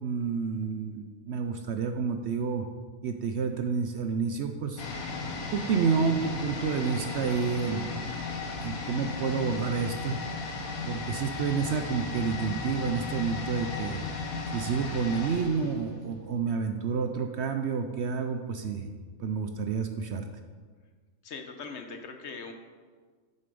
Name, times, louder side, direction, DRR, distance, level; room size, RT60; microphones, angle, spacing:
voice 1, 0.0-2.7 3.0-4.8 5.5-8.0 8.6-10.2 10.9-14.0 14.5-18.9 19.2-20.3, right 5 dB, 65° right, 6 dB, 0.7 m, -29 dB
sound 1, 4.8-16.5 16.8-16.9, left 4 dB, 85° left, 1.5 m, -35 dB
voice 2, 21.2-22.5, left 4 dB, 60° left, 6 dB, 1.0 m, -40 dB
6.9 x 6.7 x 5.3 m, 1.5 s
omnidirectional pair, 1.5 m